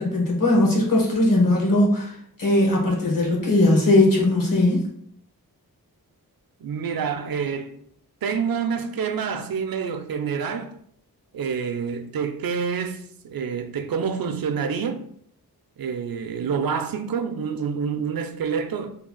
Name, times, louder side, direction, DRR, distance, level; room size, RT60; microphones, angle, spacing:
voice 1, 0.0-4.8, left 1 dB, 60° left, 1.4 m, -19 dB
voice 2, 6.6-7.8 8.2-10.7 11.3-15.0 15.8-18.9, right 6 dB, 65° right, 0.5 m, -27 dB
3.4 x 2.4 x 3.7 m
cardioid pair, 55°, 38 cm